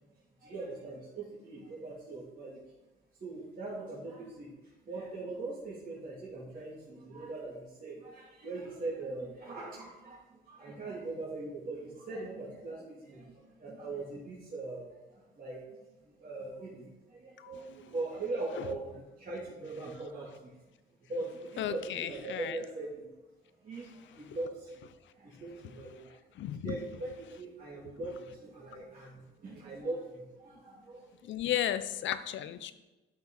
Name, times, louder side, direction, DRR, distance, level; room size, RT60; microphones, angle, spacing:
voice 1, 0.4-2.6 3.2-4.5 4.8-15.8 16.2-20.5 21.1-23.1 23.6-24.9 25.2-26.2 26.6-27.1 27.4-31.2, right 2 dB, 45° right, -8 dB, 2.7 m, -41 dB
voice 2, 21.6-22.6 24.2-24.4 25.6-25.9 26.4-26.8 31.2-32.7, left 11 dB, 70° left, 13 dB, 0.6 m, -35 dB
11.5 x 5.5 x 3.9 m, 1.1 s
cardioid pair, 90°, 20 cm